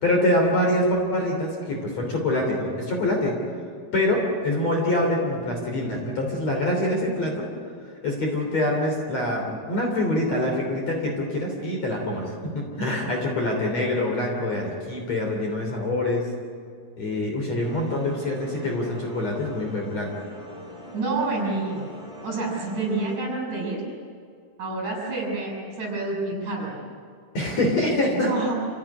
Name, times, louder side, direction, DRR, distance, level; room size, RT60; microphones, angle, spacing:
voice 1, 0.0-3.3 3.9-7.5 8.0-16.3 17.0-20.1 27.3-28.3, left 1 dB, 40° left, 0 dB, 4.1 m, -25 dB
sound 1, 17.6-23.2, left 1 dB, ahead, 5.0 m, -42 dB
voice 2, 20.9-21.9 22.2-23.8 24.6-26.8 28.1-28.5, right 3 dB, 45° right, -1 dB, 7.6 m, -28 dB
28.0 x 16.0 x 9.9 m, 2.2 s
omnidirectional pair, 5.0 m